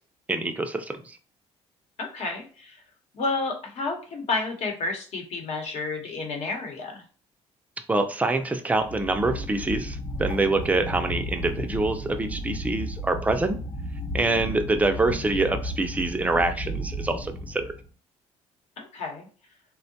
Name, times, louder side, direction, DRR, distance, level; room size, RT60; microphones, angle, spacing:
voice 1, 0.3-1.2 7.9-13.6 14.1-17.7, right 2 dB, 10° right, 7 dB, 0.4 m, -25 dB
voice 2, 2.0-2.8 3.1-7.0 14.5-14.7 18.8-19.3, left 3 dB, 65° left, 2 dB, 0.9 m, -31 dB
sound 1, 8.8-17.9, equal, 40° left, 0.9 m, -34 dB
3.6 x 2.1 x 2.7 m, 0.39 s
cardioid pair, 130°, 12 cm